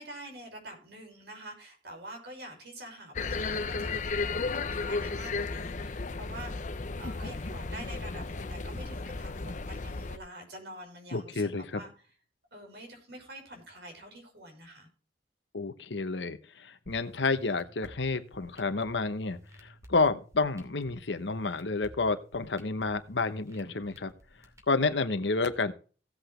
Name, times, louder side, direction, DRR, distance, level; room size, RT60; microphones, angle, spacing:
voice 1, 0.0-6.7 7.0-11.9 12.5-14.9, right 1 dB, 65° right, 2 dB, 5.3 m, -46 dB
sound 1, 3.1-10.2, left 3 dB, 45° left, 0.7 m, -34 dB
voice 2, 11.1-11.8 15.5-24.1 24.7-25.7, left 3 dB, 90° left, 10 dB, 1.0 m, -30 dB
sound 2, 16.8-24.8, equal, 20° right, 2.6 m, -54 dB
16.5 x 8.0 x 3.2 m, 0.38 s
head